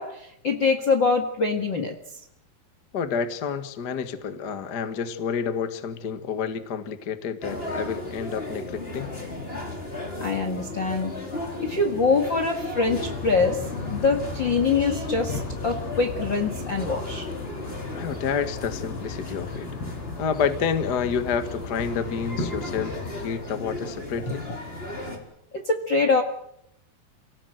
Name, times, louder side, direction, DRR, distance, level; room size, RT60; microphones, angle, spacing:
voice 1, 0.0-2.0 10.2-11.1 11.6-13.6 13.9-17.3 24.3-24.6 25.5-26.2, left 4 dB, 40° left, 6 dB, 1.8 m, -24 dB
voice 2, 2.9-9.1 17.9-19.7 20.2-24.5, left 6 dB, 65° left, 10 dB, 1.0 m, -29 dB
sound 1, 7.4-25.2, left 2 dB, 15° left, 4.3 m, -36 dB
sound 2, 12.9-23.3, left 3 dB, 85° left, 5.8 m, -36 dB
29.5 x 17.5 x 7.9 m, 0.76 s
omnidirectional pair, 4.6 m